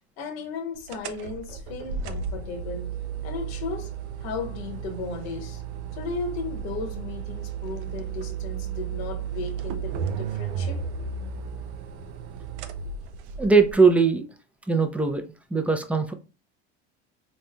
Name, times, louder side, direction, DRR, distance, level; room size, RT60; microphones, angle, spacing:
voice 1, 0.2-3.0 3.2-5.6 5.9-10.9, left 4 dB, 70° left, 1.2 m, -35 dB
sound 1, 0.9-13.7, right 7 dB, 80° right, 0.6 m, -34 dB
voice 2, 13.4-14.2 14.7-15.2 15.5-16.1, right 4 dB, 5° right, 0.5 m, -20 dB
4.1 x 3.1 x 2.3 m
supercardioid pair, 100°, 33 cm